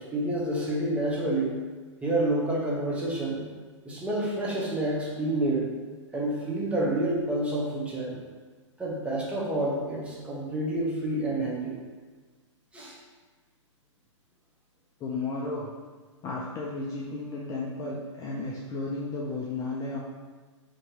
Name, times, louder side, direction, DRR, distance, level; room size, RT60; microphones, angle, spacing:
voice 1, 0.0-1.6 2.0-3.4 3.8-5.7 6.1-8.2 8.8-11.8 12.7-13.0, right 1 dB, 5° right, -5 dB, 0.8 m, -28 dB
voice 2, 15.0-15.7 16.2-20.0, left 3 dB, 20° left, -4 dB, 0.4 m, -33 dB
3.6 x 2.8 x 2.8 m, 1.4 s
hypercardioid pair, 120°, 16 cm